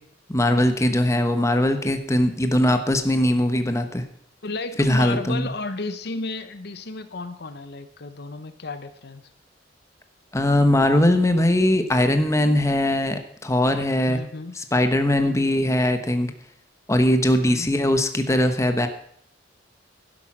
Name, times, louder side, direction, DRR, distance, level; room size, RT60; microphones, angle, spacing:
voice 1, 0.3-4.0 4.8-5.5 10.3-14.2 14.5-16.3 16.9-18.9, left 1 dB, 15° left, 7 dB, 1.1 m, -20 dB
voice 2, 4.4-9.3 14.1-14.5 15.2-15.4 17.5-17.7, left 3 dB, 60° left, 11 dB, 0.8 m, -33 dB
12.0 x 10.5 x 6.0 m, 0.67 s
head